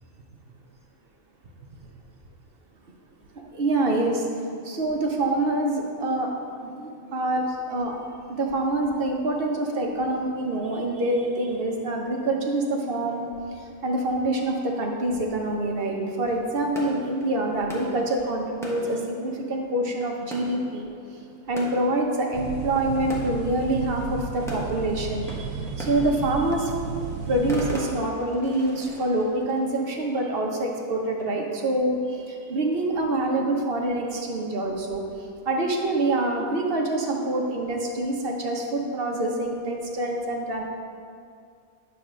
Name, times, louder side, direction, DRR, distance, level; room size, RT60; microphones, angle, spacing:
voice 1, 3.5-4.2 4.6-6.3 6.6-8.0 8.3-13.3 13.8-20.9 21.5-25.5 25.8-26.7 27.3-32.0 32.3-35.0 35.5-40.6, right 1 dB, 45° right, 1 dB, 1.1 m, -26 dB
sound 1, 15.8-31.5, right 1 dB, ahead, 1.1 m, -42 dB
sound 2, 22.3-27.8, right 5 dB, 80° right, 1.0 m, -33 dB
9.6 x 4.1 x 6.2 m, 2.4 s
omnidirectional pair, 1.5 m